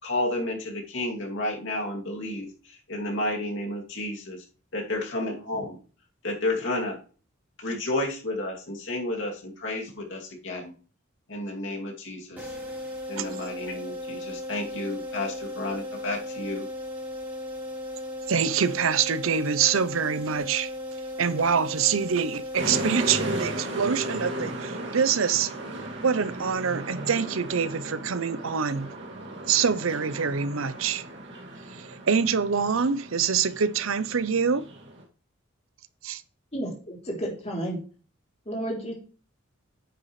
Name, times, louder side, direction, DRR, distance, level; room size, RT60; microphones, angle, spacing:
voice 1, 0.0-4.4 4.7-5.8 6.2-7.0 7.6-10.7 11.3-12.5 13.1-16.7, left 1 dB, 65° left, 2.7 m, -31 dB
sound 1, 12.4-24.1, left 1 dB, 10° right, 4.7 m, -36 dB
voice 2, 18.3-20.7 21.2-25.5 26.0-28.9 29.5-31.0 31.7-34.6 36.0-36.2, right 6 dB, 90° right, 0.7 m, -25 dB
sound 2, 22.6-35.0, right 1 dB, 60° right, 2.3 m, -36 dB
voice 3, 36.5-37.8 38.5-38.9, right 1 dB, 30° left, 3.1 m, -31 dB
9.8 x 7.8 x 3.2 m
head